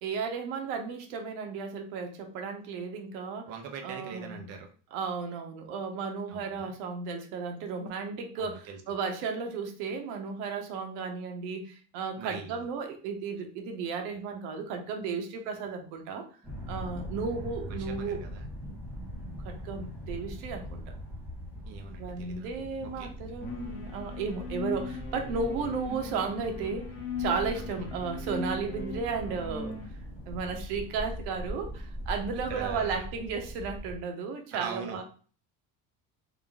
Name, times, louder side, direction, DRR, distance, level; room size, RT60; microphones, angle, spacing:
voice 1, 0.0-3.5 3.8-4.5 4.9-16.3 16.7-18.2 18.6-18.8 19.4-20.9 22.0-26.9 27.2-29.8 30.3-35.0, right 5 dB, 85° right, 4 dB, 0.9 m, -34 dB
voice 2, 3.5-4.7 6.3-6.7 8.3-8.8 12.2-12.6 17.7-18.5 21.6-22.5 22.8-23.1 27.5-27.9 32.5-33.0 34.5-35.0, right 6 dB, 40° right, 4 dB, 0.5 m, -41 dB
sound 1, 16.4-34.0, equal, 5° right, 0.9 m, -41 dB
sound 2, 23.4-29.9, left 4 dB, 30° left, 0.7 m, -39 dB
3.6 x 2.4 x 3.4 m, 0.40 s
cardioid pair, 175°, 38 cm